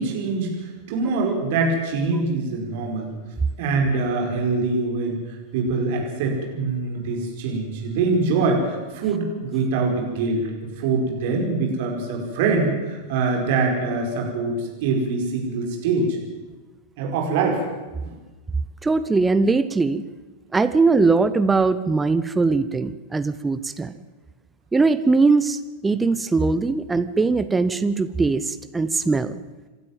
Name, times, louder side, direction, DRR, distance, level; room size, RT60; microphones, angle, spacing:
voice 1, 0.0-3.1 3.6-16.2 17.0-17.6 18.0-18.2, right 3 dB, 50° right, 1 dB, 5.1 m, -24 dB
voice 2, 18.8-20.0 20.5-23.9 24.7-29.4, right 3 dB, 10° right, 12 dB, 0.8 m, -20 dB
28.0 x 12.5 x 7.5 m, 1.2 s
figure-of-eight pair, 90°, 0 cm